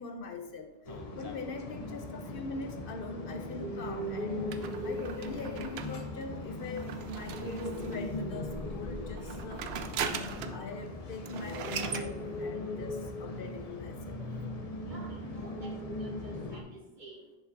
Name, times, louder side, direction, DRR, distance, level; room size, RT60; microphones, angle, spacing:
voice 1, 0.0-14.2, left 3 dB, 60° left, 5 dB, 0.9 m, -42 dB
sound 1, 0.8-16.6, left 1 dB, 40° left, 0.7 m, -39 dB
sound 2, 4.5-8.2 9.1-10.7 10.9-11.0 11.2-12.1, right 7 dB, 75° right, 0.8 m, -39 dB
voice 2, 14.8-16.7 17.0-17.2, right 2 dB, 50° right, 1 dB, 1.2 m, -50 dB
10.5 x 5.1 x 2.6 m, 1.0 s
omnidirectional pair, 1.1 m